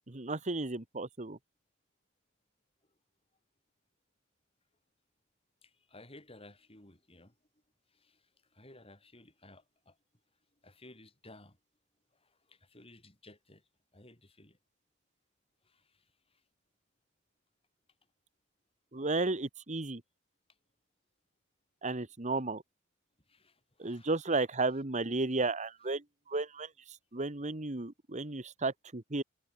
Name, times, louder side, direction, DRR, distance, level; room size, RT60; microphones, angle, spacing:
voice 1, 0.1-1.4 18.9-20.0 21.8-22.6 23.8-26.7 27.1-29.2, right 3 dB, 35° right, 1.4 m, -33 dB
voice 2, 5.6-7.4 7.9-10.0 10.6-11.6 12.1-14.6 15.6-16.4 23.3-24.1, left 2 dB, 30° left, 7.6 m, -57 dB
head